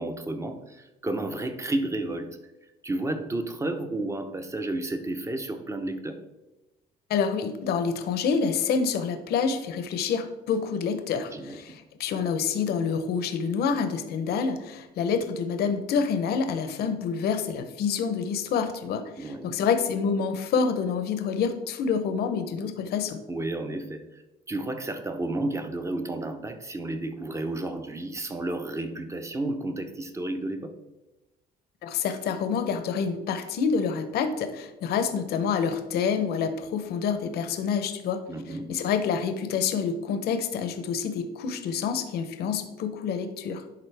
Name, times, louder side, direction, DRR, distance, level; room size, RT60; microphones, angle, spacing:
voice 1, 0.0-2.3 2.8-6.2 11.3-11.6 19.2-19.6 23.3-24.2 24.5-30.7 38.3-38.7, right 2 dB, 15° right, 7 dB, 0.7 m, -32 dB
voice 2, 7.1-23.2 31.8-43.6, left 6 dB, 70° left, 8 dB, 0.7 m, -27 dB
10.5 x 4.0 x 3.4 m, 1.0 s
cardioid pair, 110°, 17 cm